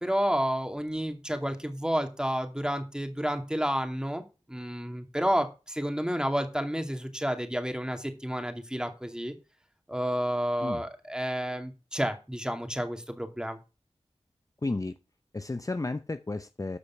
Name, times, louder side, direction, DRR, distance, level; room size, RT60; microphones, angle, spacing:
voice 1, 0.0-4.2 4.5-9.3 9.9-13.6, equal, 5° right, 6 dB, 2.5 m, -30 dB
voice 2, 14.6-15.0 15.3-16.8, left 2 dB, 30° left, 10 dB, 0.7 m, -32 dB
14.0 x 5.1 x 5.8 m, 0.30 s
cardioid pair, 45°, 12 cm